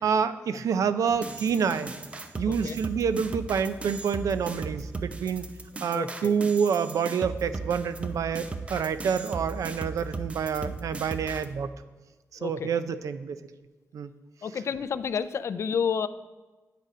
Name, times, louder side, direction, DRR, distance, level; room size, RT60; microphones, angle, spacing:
voice 1, 0.0-1.9 2.4-5.4 5.8-11.7 12.3-13.4 13.9-14.1, right 6 dB, 75° right, 12 dB, 0.5 m, -27 dB
sound 1, 1.1-11.5, right 3 dB, 20° right, 0.5 m, -37 dB
voice 2, 2.5-2.8 5.9-6.4 12.4-12.7 14.4-16.1, left 7 dB, 50° left, 13 dB, 0.3 m, -30 dB
9.2 x 6.6 x 5.0 m, 1.2 s
wide cardioid pair, 170°, 6 cm